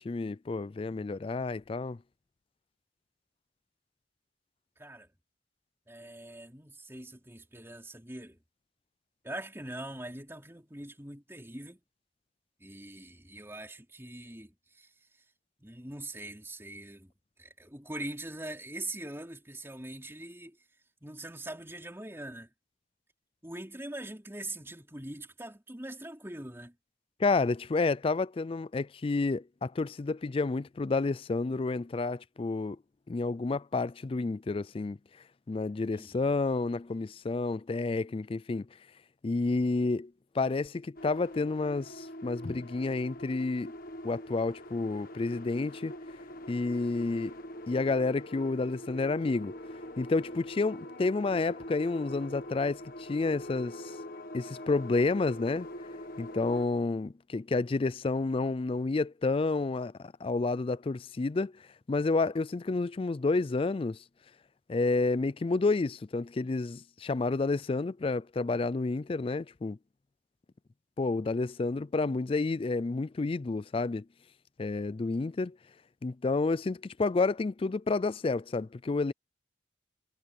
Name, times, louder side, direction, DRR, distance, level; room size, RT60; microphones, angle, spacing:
voice 1, 0.0-2.0 27.2-32.8 33.1-35.0 35.5-38.7 39.2-43.7 44.0-45.9 46.5-47.3 47.7-49.5 50.0-53.9 54.3-55.7 56.2-61.6 61.9-64.0 64.7-69.8 71.0-74.0 74.6-75.6 76.0-79.1, left 3 dB, 30° left, 0.3 m, -30 dB
voice 2, 5.9-8.4 9.2-11.8 12.6-14.9 15.6-17.1 17.4-20.6 21.0-22.5 23.4-26.7 35.9-36.3, right 1 dB, 15° right, 4.4 m, -42 dB
sound 1, 41.0-56.7, left 1 dB, 50° left, 1.3 m, -44 dB
head